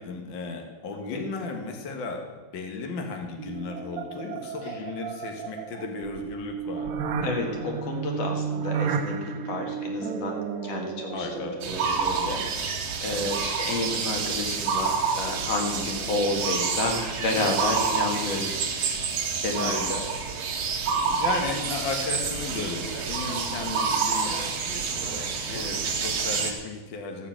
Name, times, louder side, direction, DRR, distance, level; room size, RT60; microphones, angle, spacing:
voice 1, 0.0-2.2 2.5-6.9 11.1-11.6 13.1-13.3 19.5-20.1 21.2-27.3, left 4 dB, 80° left, 3 dB, 1.0 m, -35 dB
voice 2, 0.9-1.3 4.6-4.8 7.2-18.5 18.8-19.0 19.4-19.9 20.9-21.1 25.5-25.8, left 2 dB, 50° left, 2 dB, 2.4 m, -31 dB
sound 1, 3.4-12.5, right 6 dB, 75° right, 1.6 m, -33 dB
sound 2, 11.6-26.5, right 5 dB, 55° right, 2.1 m, -28 dB
14.5 x 7.0 x 7.4 m, 1.3 s
omnidirectional pair, 4.3 m